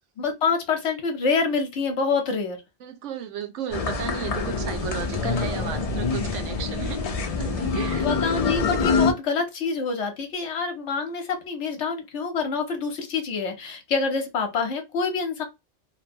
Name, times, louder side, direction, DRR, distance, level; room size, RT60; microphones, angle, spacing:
voice 1, 0.2-2.6 8.0-15.4, left 5 dB, 75° left, 1.0 m, -26 dB
voice 2, 2.8-8.5, right 9 dB, 90° right, 1.0 m, -35 dB
sound 1, 3.7-9.1, left 4 dB, 55° left, 0.4 m, -25 dB
2.9 x 2.1 x 2.5 m
omnidirectional pair, 1.2 m